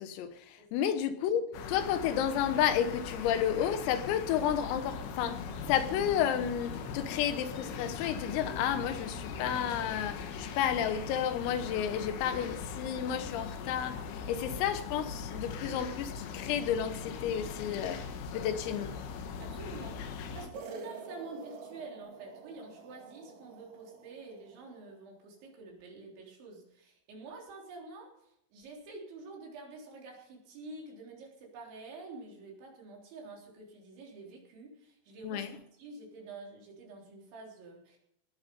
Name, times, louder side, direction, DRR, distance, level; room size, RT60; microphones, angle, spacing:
voice 1, 0.0-18.0 18.3-18.9 35.2-35.5, left 9 dB, 90° left, 4.0 m, -31 dB
voice 2, 0.6-0.9 18.5-18.7 19.4-38.0, right 3 dB, 65° right, 6.0 m, -48 dB
sound 1, 1.5-20.5, left 6 dB, 75° left, 3.9 m, -40 dB
sound 2, 20.5-25.0, right 5 dB, 45° right, 2.4 m, -49 dB
19.5 x 10.0 x 5.5 m
omnidirectional pair, 5.9 m